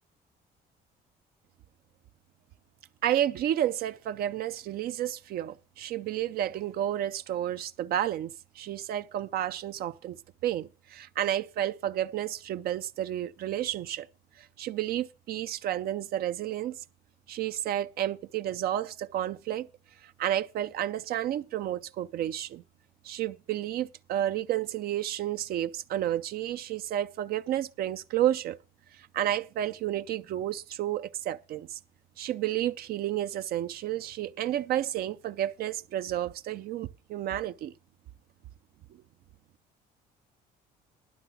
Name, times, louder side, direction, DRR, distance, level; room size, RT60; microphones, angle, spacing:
voice 1, 3.0-14.1 14.4-16.8 17.3-19.7 20.0-22.6 23.0-28.6 29.0-31.8 32.2-37.7, right 12 dB, 65° right, 0.5 m, -31 dB
12.0 x 5.7 x 6.9 m
cardioid pair, 110°, 17 cm